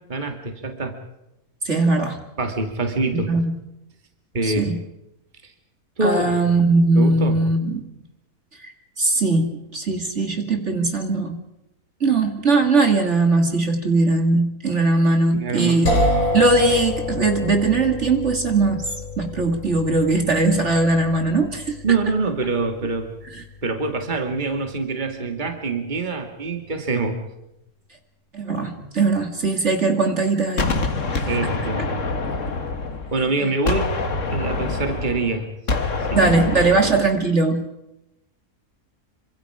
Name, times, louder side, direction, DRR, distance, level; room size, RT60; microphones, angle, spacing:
voice 1, 0.1-1.0 2.4-3.3 4.3-4.7 6.0-6.3 7.0-7.4 15.3-16.0 21.8-23.1 23.6-27.2 31.2-31.9 33.1-33.9 34.3-35.5 36.1-36.2 36.6-37.0, right 3 dB, 30° right, 4 dB, 2.3 m, -25 dB
voice 2, 1.6-2.2 3.1-3.6 4.4-4.8 6.0-7.8 8.6-8.7 9.0-11.4 12.0-15.9 16.3-18.9 19.2-21.8 28.3-30.7 31.1-31.3 36.1-37.6, right 3 dB, 45° right, 4 dB, 2.5 m, -20 dB
sound 1, 15.9-25.6, left 1 dB, 65° left, 3.9 m, -29 dB
Gunshot gunfire, 30.6-33.3 33.7-37.2, left 3 dB, 50° left, 2.0 m, -25 dB
27.5 x 25.5 x 4.9 m, 0.90 s
omnidirectional pair, 1.7 m